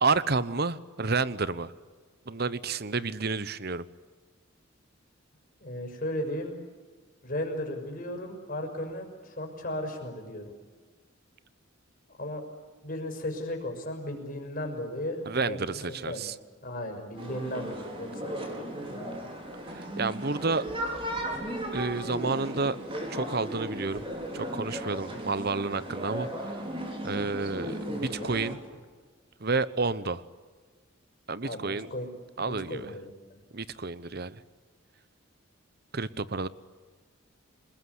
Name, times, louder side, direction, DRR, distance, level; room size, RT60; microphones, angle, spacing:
voice 1, 0.0-1.7 2.3-3.8 15.3-16.3 19.7-20.7 21.7-22.8 23.1-24.0 24.3-26.6 27.0-28.6 29.4-30.2 31.3-31.9 32.4-32.9 33.5-34.4 35.9-36.5, right 4 dB, 50° right, 16 dB, 1.0 m, -30 dB
voice 2, 5.6-6.6 7.2-10.5 12.2-12.4 12.8-16.3 16.6-18.4 18.9-19.1 25.1-25.2 27.1-27.3 28.0-28.4 31.4-32.1 32.4-33.4, left 1 dB, 40° left, 2 dB, 6.1 m, -36 dB
sound 1, 17.2-28.5, equal, 25° right, 4.6 m, -36 dB
27.5 x 21.0 x 9.8 m, 1.5 s
head